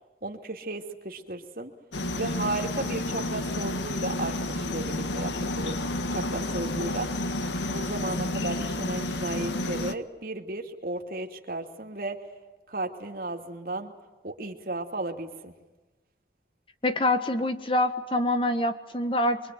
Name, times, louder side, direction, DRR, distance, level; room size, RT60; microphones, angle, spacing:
voice 1, 0.2-1.7 2.1-5.7 6.1-7.1 7.7-12.2 12.7-13.9 14.2-15.5, right 2 dB, 50° right, 3 dB, 2.8 m, -34 dB
sound 1, 1.9-9.9, left 1 dB, 80° left, 1.4 m, -30 dB
voice 2, 16.8-19.4, left 1 dB, 30° left, 8 dB, 1.5 m, -25 dB
24.5 x 24.5 x 9.3 m, 1.2 s
head